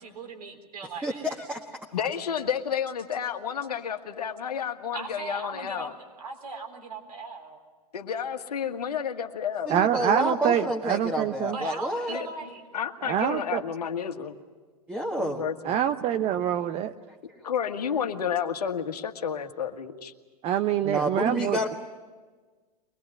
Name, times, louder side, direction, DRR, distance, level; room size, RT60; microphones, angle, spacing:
voice 1, 0.0-1.3 4.9-5.9 6.2-7.6 11.4-12.6, right 4 dB, 75° right, 3 dB, 4.0 m, -39 dB
voice 2, 1.0-1.8 9.7-12.2 14.9-15.4 20.8-21.8, equal, 10° right, 1 dB, 1.6 m, -29 dB
voice 3, 1.9-5.9 7.9-9.7 12.1-12.3 12.7-14.4 15.2-15.8 17.4-20.1, left 8 dB, 75° left, 6 dB, 1.6 m, -31 dB
voice 4, 9.7-11.6 13.0-13.6 15.6-16.9 20.4-21.6, right 10 dB, 30° right, 10 dB, 0.7 m, -25 dB
23.5 x 20.5 x 8.8 m, 1.4 s
hypercardioid pair, 105°, 20 cm